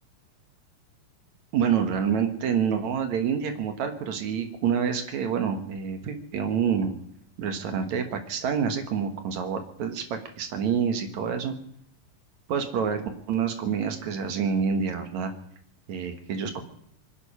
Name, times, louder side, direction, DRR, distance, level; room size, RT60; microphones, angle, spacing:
voice 1, 1.5-6.9 7.4-11.5 12.5-15.3 15.9-16.6, right 7 dB, 60° right, 7 dB, 2.5 m, -27 dB
25.0 x 10.0 x 5.6 m, 0.69 s
omnidirectional pair, 3.9 m